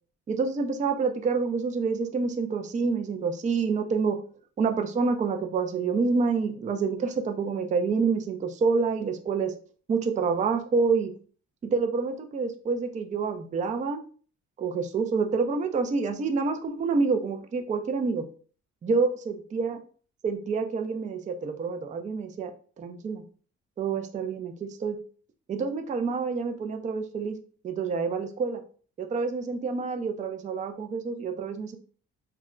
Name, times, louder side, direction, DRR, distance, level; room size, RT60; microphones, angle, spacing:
voice 1, 0.3-4.2 4.6-9.5 9.9-11.1 11.6-14.0 14.6-18.3 18.8-19.8 20.2-23.2 23.8-25.0 25.5-27.4 27.6-28.6 29.0-31.8, right 4 dB, 25° right, 6 dB, 0.4 m, -27 dB
2.3 x 2.0 x 3.6 m, 0.42 s
cardioid pair, 90°, 30 cm